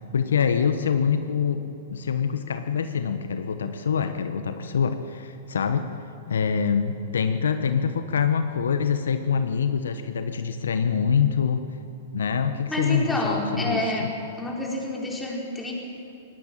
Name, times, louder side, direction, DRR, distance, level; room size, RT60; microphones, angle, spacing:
voice 1, 0.0-5.9 6.3-11.7 12.1-14.1, left 6 dB, 80° left, 9 dB, 1.1 m, -25 dB
voice 2, 12.7-14.1 14.4-15.7, left 1 dB, 10° left, -2 dB, 5.0 m, -28 dB
19.5 x 17.0 x 9.0 m, 2.6 s
hypercardioid pair, 120°, 0 cm